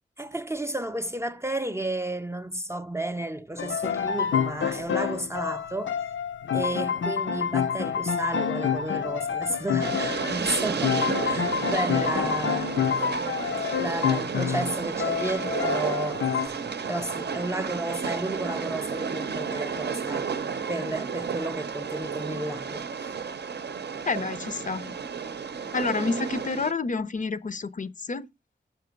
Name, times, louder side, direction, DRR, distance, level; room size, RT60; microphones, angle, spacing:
voice 1, 0.2-5.9 6.5-13.0 13.8-16.6 16.8-20.3 20.7-23.1, right 1 dB, 15° right, 0.4 m, -32 dB
sound 1, 3.6-16.5, left 7 dB, 85° left, 0.6 m, -28 dB
Train, 9.8-26.7, right 6 dB, 60° right, 0.6 m, -32 dB
voice 2, 24.1-24.9 25.7-28.3, left 4 dB, 45° left, 0.5 m, -29 dB
6.5 x 5.8 x 5.1 m
wide cardioid pair, 105°, 19 cm